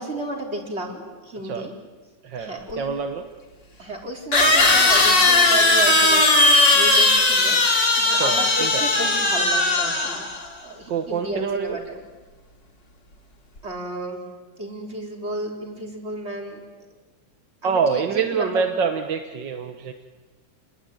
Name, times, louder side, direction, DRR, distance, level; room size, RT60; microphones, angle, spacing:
voice 1, 0.0-1.7 2.4-2.9 3.8-6.3 6.7-7.6 7.9-10.3 10.6-12.0 13.6-14.3 14.6-16.6 17.6-18.7, right 1 dB, 30° right, 1 dB, 4.6 m, -32 dB
voice 2, 2.2-3.3 8.1-8.9 10.9-11.8 17.6-19.9, right 6 dB, 60° right, 6 dB, 1.9 m, -26 dB
sound 1, 2.7-2.8 4.3-10.4, left 2 dB, 55° left, 3.8 m, -18 dB
30.0 x 21.0 x 9.3 m, 1.3 s
omnidirectional pair, 2.3 m